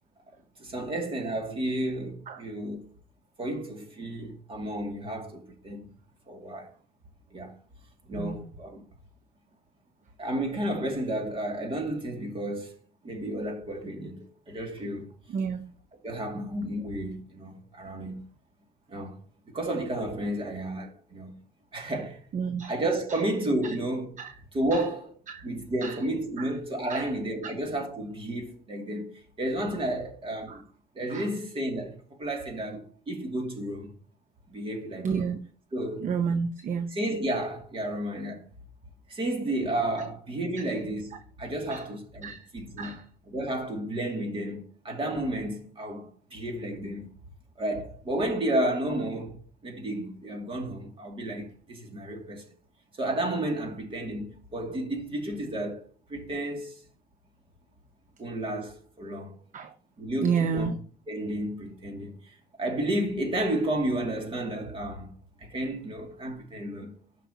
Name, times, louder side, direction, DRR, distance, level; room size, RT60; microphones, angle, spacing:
voice 1, 0.6-2.9 3.4-5.9 6.3-6.7 7.3-7.5 8.1-8.8 10.2-12.8 13.0-15.1 16.0-18.2 18.9-19.2 19.5-21.4 21.7-22.2 22.6-24.2 24.5-30.6 30.9-33.9 34.5-35.4 35.7-36.1 36.9-38.5 39.1-47.1 47.6-52.5 53.0-56.8 58.2-59.4 60.0-60.8 61.1-65.1 65.4-67.0, right 1 dB, 30° right, 2.3 m, -32 dB
voice 2, 15.3-15.6 22.3-22.7 25.3-25.5 25.8-26.0 26.9-27.1 30.5-30.6 31.1-31.2 35.0-35.4 36.0-36.9 41.7-41.8 42.2-42.4 42.8-43.0 59.5-59.7 60.2-60.7, right 6 dB, 50° right, 0.8 m, -29 dB
13.0 x 5.8 x 2.8 m
cardioid pair, 110°, 17 cm